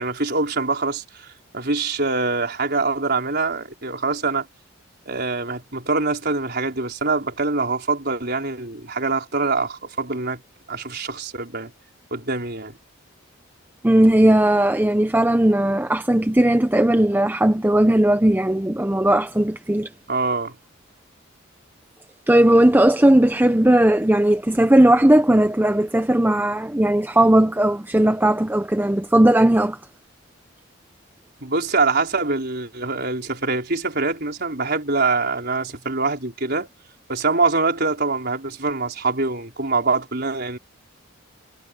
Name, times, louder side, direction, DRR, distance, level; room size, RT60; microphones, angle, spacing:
voice 1, 0.0-4.5 5.1-10.4 10.7-11.7 12.1-12.7 20.1-20.6 31.4-36.7 37.1-40.6, right 3 dB, 50° right, 4.8 m, -24 dB
voice 2, 13.8-19.9 22.3-29.8, right 1 dB, 10° right, 0.6 m, -17 dB
head